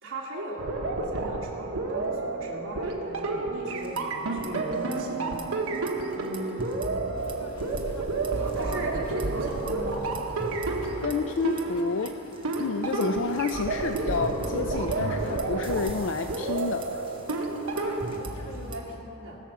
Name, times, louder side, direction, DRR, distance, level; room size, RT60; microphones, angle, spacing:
voice 1, 0.0-5.5 6.1-6.8 8.3-10.0 18.3-19.4, right 1 dB, 60° right, -6 dB, 2.3 m, -38 dB
sound 1, 0.6-18.2, right 3 dB, 85° right, 1.1 m, -31 dB
sound 2, 3.7-4.5 4.7-5.0 5.3-8.0 8.2-8.8 9.2-12.6 13.0-19.0, right 2 dB, 25° right, 0.9 m, -42 dB
sound 3, 7.1-18.8, left 2 dB, 85° left, 1.0 m, -47 dB
voice 2, 11.0-12.2 12.6-16.9, left 4 dB, 55° left, 8 dB, 0.4 m, -29 dB
19.5 x 6.9 x 6.1 m, 2.9 s
head